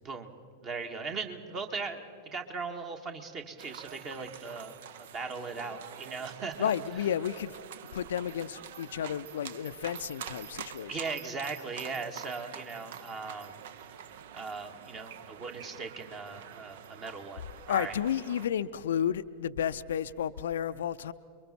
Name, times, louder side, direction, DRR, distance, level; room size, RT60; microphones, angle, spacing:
voice 1, 0.6-6.7 10.9-13.5 14.3-17.9, right 4 dB, 30° right, 5 dB, 1.9 m, -39 dB
sound 1, 3.6-18.5, right 9 dB, 55° right, 0.7 m, -46 dB
voice 2, 6.6-7.5 7.9-11.0 17.7-21.1, left 9 dB, 60° left, 12 dB, 0.5 m, -32 dB
29.0 x 23.0 x 4.4 m, 2.4 s
figure-of-eight pair, 90°, 0 cm